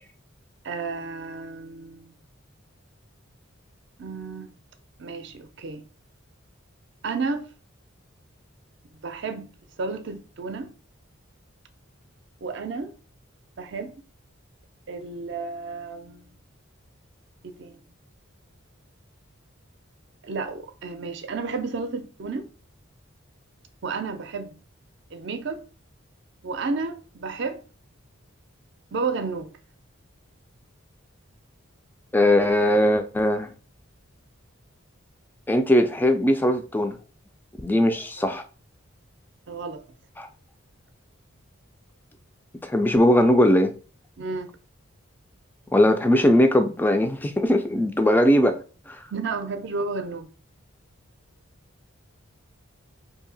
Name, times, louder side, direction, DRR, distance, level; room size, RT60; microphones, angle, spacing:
voice 1, 0.6-2.2 4.0-4.5 5.0-5.8 7.0-7.5 8.8-9.5 9.8-10.7 12.4-12.9 13.6-13.9 14.9-16.3 17.4-17.8 20.2-22.5 23.8-24.6 25.1-25.6 26.4-27.6 28.9-29.5 38.2-38.3 39.5-39.8 44.2-44.5 49.1-50.3, right 4 dB, 55° right, 0.5 m, -32 dB
voice 2, 32.1-33.5 35.5-37.0 37.6-38.4 40.2-40.3 42.6-43.8 45.7-49.0, left 1 dB, 10° left, 0.3 m, -20 dB
2.8 x 2.7 x 3.9 m
head